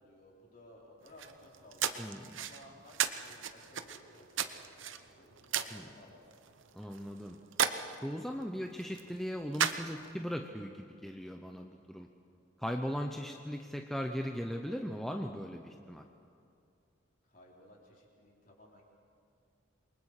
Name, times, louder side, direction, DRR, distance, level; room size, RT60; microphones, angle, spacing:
voice 1, 0.0-6.2 6.5-6.6 17.2-18.8, left 1 dB, 40° left, -2 dB, 4.2 m, -58 dB
sound 1, 1.0-10.3, right 8 dB, 75° right, 0.9 m, -37 dB
voice 2, 1.9-2.4 5.7-5.9 6.7-7.4 8.0-12.1 12.6-16.0, equal, ahead, 3 dB, 0.7 m, -38 dB
28.5 x 23.0 x 4.9 m, 2.5 s
head